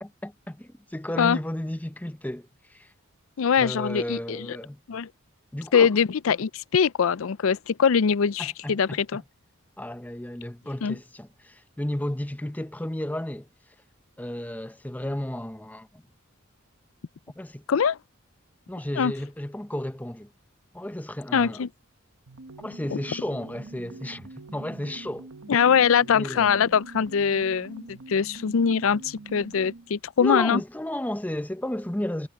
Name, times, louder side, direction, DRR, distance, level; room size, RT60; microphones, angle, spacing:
voice 1, 0.0-2.9 3.6-4.8 5.5-6.0 8.4-9.2 9.8-13.5 14.2-16.0 17.3-17.6 18.7-20.3 20.7-21.6 22.6-25.3 26.1-26.6 30.2-32.3, left 1 dB, 10° left, 0.7 m, -33 dB
voice 2, 3.4-4.5 4.9-5.1 5.7-9.2 10.8-11.0 17.7-18.0 19.0-19.1 21.3-21.7 22.9-23.0 25.5-30.6, left 6 dB, 75° left, 0.5 m, -23 dB
sound 1, 22.3-29.9, right 3 dB, 85° right, 1.1 m, -45 dB
head